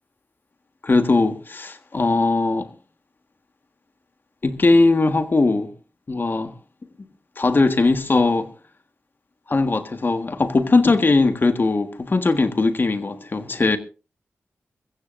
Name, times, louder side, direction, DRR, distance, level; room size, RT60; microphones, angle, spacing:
voice 1, 0.8-2.7 4.4-5.7 6.1-6.5 7.0-7.1 7.4-8.5 9.5-13.8, left 3 dB, 45° left, 1.6 m, -19 dB
22.0 x 15.0 x 2.6 m
cardioid pair, 65°, 5 cm